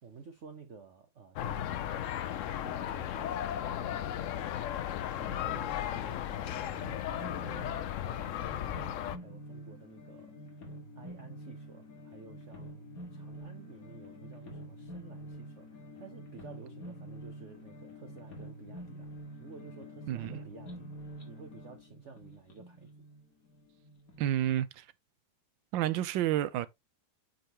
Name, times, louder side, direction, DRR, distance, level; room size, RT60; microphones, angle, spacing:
voice 1, 0.0-2.2 2.5-4.7 5.2-10.3 11.0-19.1 19.4-20.9 21.2-22.9, right 5 dB, 50° right, 1.1 m, -52 dB
sound 1, 1.4-9.2, left 11 dB, 80° left, 0.7 m, -35 dB
sound 2, 5.2-24.3, equal, 50° left, 2.4 m, -47 dB
voice 2, 24.2-24.8 25.7-26.7, right 12 dB, 85° right, 1.4 m, -30 dB
8.8 x 4.0 x 2.9 m
omnidirectional pair, 2.0 m